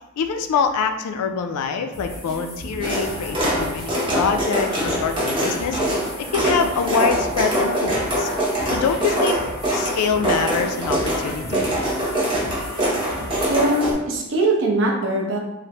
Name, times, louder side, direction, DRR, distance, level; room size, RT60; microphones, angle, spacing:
voice 1, 0.2-5.8 6.2-8.3 8.7-9.4 9.7-11.7, left 5 dB, 85° left, 7 dB, 0.3 m, -25 dB
sound 1, 1.9-13.9, equal, 15° left, 0.7 m, -35 dB
sound 2, 2.8-13.9, equal, 25° right, 0.7 m, -24 dB
voice 2, 13.5-15.4, right 2 dB, 55° right, 0 dB, 0.6 m, -21 dB
3.1 x 2.0 x 2.8 m, 0.94 s
head